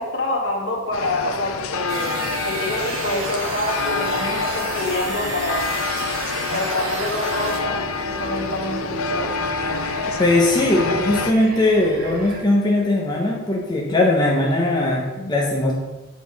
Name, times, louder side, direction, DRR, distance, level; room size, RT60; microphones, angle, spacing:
voice 1, 0.0-2.2 2.4-5.7 6.5-7.8 8.2-9.3, left 1 dB, 60° left, 0 dB, 1.4 m, -26 dB
sound 1, 0.9-11.3, left 4 dB, 90° left, 0.5 m, -27 dB
sound 2, 1.9-7.6, right 3 dB, 75° right, 1.3 m, -31 dB
sound 3, 7.3-12.4, right 1 dB, 45° right, 0.9 m, -36 dB
voice 2, 10.2-15.7, left 2 dB, 20° left, -2 dB, 0.8 m, -19 dB
7.3 x 4.2 x 4.7 m, 1.1 s
head